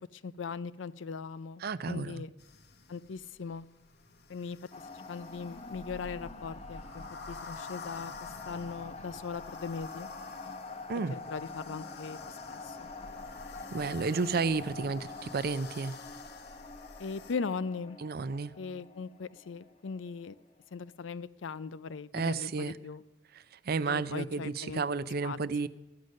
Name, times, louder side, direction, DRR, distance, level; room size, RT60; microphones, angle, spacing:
voice 1, 0.1-2.3 2.9-3.7 4.3-4.6 4.9-10.1 11.1-12.9 17.0-18.0 18.6-20.3 20.7-23.0 23.9-24.8 25.2-25.4, left 5 dB, 85° left, 0.5 m, -39 dB
voice 2, 1.6-2.2 10.9-11.2 13.7-16.0 18.0-18.5 22.1-22.7 23.3-25.7, right 4 dB, 55° right, 0.5 m, -32 dB
sound 1, 2.4-17.3, left 4 dB, 60° left, 1.0 m, -50 dB
sound 2, 4.7-20.5, left 3 dB, 35° left, 0.8 m, -46 dB
13.5 x 9.3 x 6.4 m
head